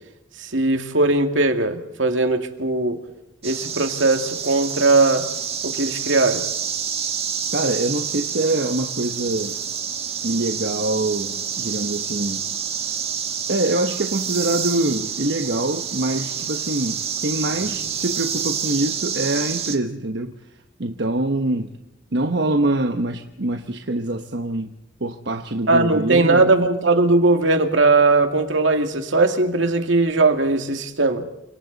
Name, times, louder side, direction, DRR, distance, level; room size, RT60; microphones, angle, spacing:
voice 1, 0.4-3.0 3.4-5.2 5.6-6.4 25.7-31.2, right 3 dB, 75° right, 5 dB, 2.3 m, -19 dB
sound 1, 3.4-19.8, right 7 dB, 30° right, 1.8 m, -28 dB
voice 2, 7.5-9.6 10.2-12.4 13.5-20.3 20.8-21.7 22.1-24.7 25.0-26.5, right 2 dB, 60° right, 5 dB, 1.2 m, -24 dB
29.5 x 26.0 x 4.1 m, 0.90 s
head